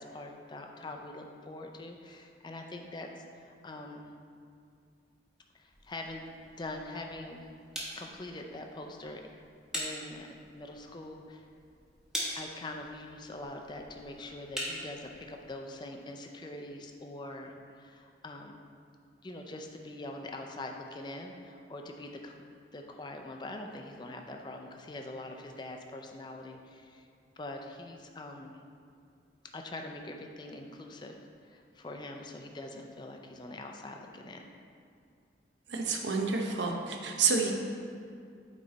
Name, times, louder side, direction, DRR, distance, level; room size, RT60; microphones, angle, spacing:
voice 1, 0.0-4.1 5.5-6.3 6.6-7.5 8.0-9.2 9.7-11.5 12.4-18.6 19.2-22.4 22.7-27.1 27.4-28.6 29.5-31.1 31.4-34.4, left 2 dB, 25° left, 3 dB, 0.4 m, -43 dB
sound 1, 5.7-15.5, equal, 5° right, 1.0 m, -43 dB
voice 2, 35.7-37.5, right 4 dB, 80° right, 1 dB, 0.7 m, -29 dB
8.5 x 3.2 x 4.0 m, 2.3 s
head